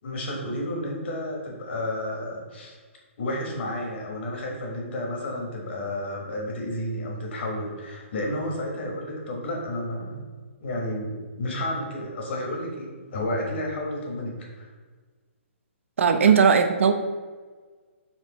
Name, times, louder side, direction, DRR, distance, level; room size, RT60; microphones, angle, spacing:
voice 1, 0.0-2.7 3.2-10.2 10.6-14.7, left 1 dB, 55° left, -1 dB, 1.2 m, -31 dB
voice 2, 16.0-16.9, right 6 dB, 70° right, 8 dB, 0.4 m, -18 dB
4.4 x 3.3 x 2.9 m, 1.4 s
hypercardioid pair, 155°, 7 cm